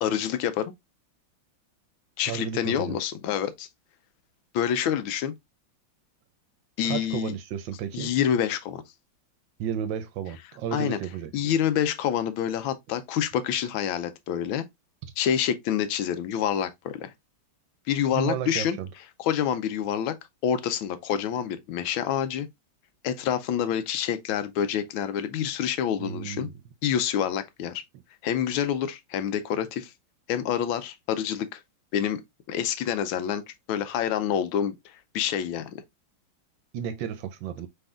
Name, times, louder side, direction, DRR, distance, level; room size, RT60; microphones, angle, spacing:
voice 1, 0.0-0.7 2.2-3.7 4.5-5.3 6.8-7.3 7.9-8.8 10.7-11.0 11.3-14.7 15.2-17.1 17.9-18.8 19.2-20.2 20.4-22.5 23.0-26.5 26.8-27.8 28.2-29.9 30.3-31.6 31.9-32.2 32.5-33.4 33.7-35.8, left 9 dB, 85° left, 1.4 m, -27 dB
voice 2, 2.3-3.0 6.8-8.1 9.6-11.5 18.1-18.9 26.0-26.5 36.7-37.7, right 9 dB, 75° right, 1.3 m, -33 dB
5.5 x 3.6 x 2.3 m
omnidirectional pair, 2.2 m